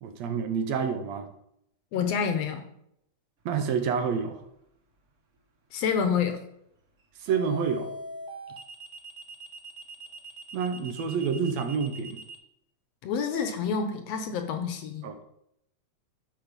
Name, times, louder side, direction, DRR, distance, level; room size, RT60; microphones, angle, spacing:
voice 1, 0.0-1.3 3.5-4.4 7.2-7.9 10.5-12.2 15.0-15.2, right 6 dB, 70° right, 7 dB, 2.0 m, -28 dB
voice 2, 1.9-2.6 5.7-6.4 13.0-15.0, left 6 dB, 70° left, 7 dB, 1.9 m, -28 dB
sound 1, 4.0-4.3 7.3-12.4, right 1 dB, 55° right, 0.8 m, -41 dB
12.0 x 5.5 x 5.2 m, 0.76 s
omnidirectional pair, 3.3 m